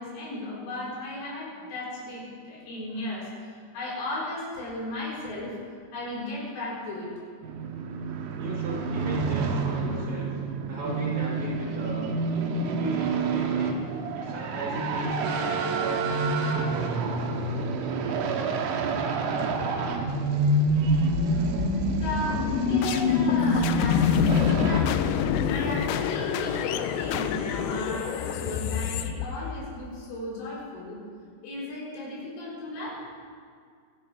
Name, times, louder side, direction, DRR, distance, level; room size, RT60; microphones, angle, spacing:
voice 1, 0.0-7.1 20.0-20.5 21.2-21.4 21.7-25.0 25.4-31.0 31.4-33.0, left 1 dB, 70° left, -7 dB, 7.1 m, -36 dB
sound 1, 7.4-24.8, right 3 dB, 85° right, 3.8 m, -28 dB
voice 2, 8.4-10.3 10.7-12.1 12.6-13.8 14.1-17.2 22.4-23.1 23.8-24.7 25.2-26.3 27.6-28.0, right 1 dB, 45° right, -5 dB, 5.3 m, -38 dB
sound 2, 20.9-29.8, left 8 dB, 90° left, 2.4 m, -26 dB
27.0 x 12.0 x 3.5 m, 2.1 s
omnidirectional pair, 5.8 m